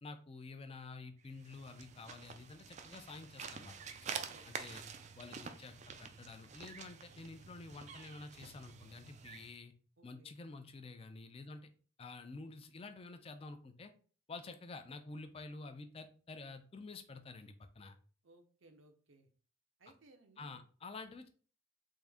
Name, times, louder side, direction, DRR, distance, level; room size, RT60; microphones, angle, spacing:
voice 1, 0.0-3.8 4.5-4.8 5.2-9.7 10.0-11.7 12.0-13.9 14.3-18.0 20.4-21.3, left 3 dB, 30° left, 8 dB, 0.4 m, -50 dB
sound 1, 1.3-9.5, right 6 dB, 35° right, 0.3 m, -48 dB
voice 2, 4.0-4.5 10.0-10.3 14.4-14.5 18.2-19.3 19.8-20.6, right 2 dB, 85° right, 6 dB, 0.7 m, -64 dB
3.6 x 2.6 x 3.4 m, 0.40 s
head